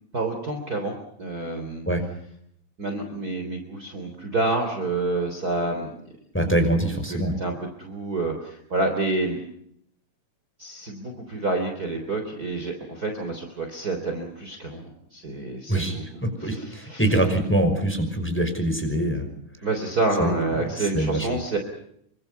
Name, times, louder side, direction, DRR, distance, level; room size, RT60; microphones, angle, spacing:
voice 1, 0.1-0.9 1.2-1.8 2.8-5.9 7.1-9.4 10.6-16.0 16.4-17.0 19.6-21.6, right 2 dB, 25° right, 4 dB, 3.7 m, -28 dB
voice 2, 6.3-7.4 15.7-19.2 20.2-21.3, right 1 dB, 5° left, 6 dB, 5.3 m, -24 dB
28.0 x 25.5 x 5.6 m, 0.72 s
omnidirectional pair, 3.9 m